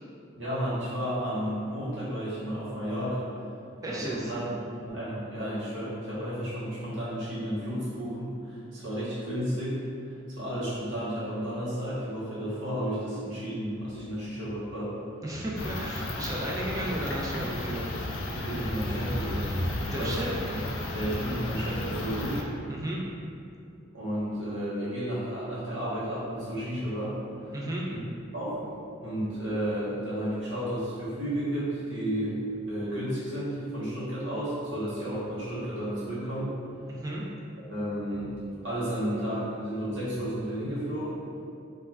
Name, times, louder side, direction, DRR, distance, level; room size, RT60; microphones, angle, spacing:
voice 1, 0.3-3.3 3.9-4.5 4.8-9.8 10.4-14.9 18.2-19.5 19.9-20.1 20.5-20.6 20.9-22.4 23.9-27.2 27.4-27.5 28.3-28.7 29.0-36.6 37.6-38.3 38.6-41.2, equal, 70° right, -10 dB, 1.0 m, -32 dB
voice 2, 3.8-4.3 15.2-17.9 19.9-20.3 22.7-23.0 27.5-27.8 36.9-37.2, right 1 dB, 15° right, -3 dB, 0.3 m, -34 dB
sound 1, 15.6-22.4, left 1 dB, 75° left, 0.3 m, -33 dB
2.3 x 2.2 x 3.2 m, 2.4 s
head